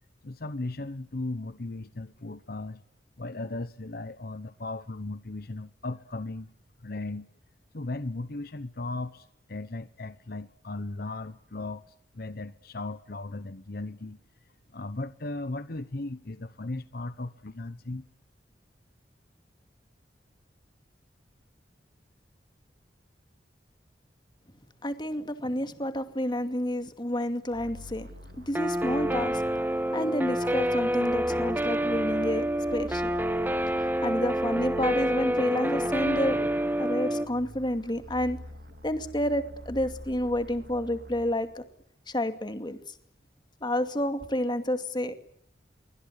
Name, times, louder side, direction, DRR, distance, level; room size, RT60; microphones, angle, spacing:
voice 1, 0.2-2.8 3.2-6.5 6.8-7.3 7.7-14.2 14.7-18.0, left 2 dB, 60° left, 13 dB, 1.0 m, -36 dB
voice 2, 24.8-28.1 28.5-29.4 29.9-33.1 34.0-36.5 36.8-38.4 38.8-41.6 42.1-42.8 43.6-45.3, left 1 dB, 25° left, 8 dB, 2.4 m, -29 dB
sound 1, 27.5-41.6, left 1 dB, 70° right, 4.6 m, -46 dB
Guitar, 28.5-37.2, right 1 dB, 10° right, 1.4 m, -28 dB
27.0 x 24.0 x 8.3 m, 0.72 s
head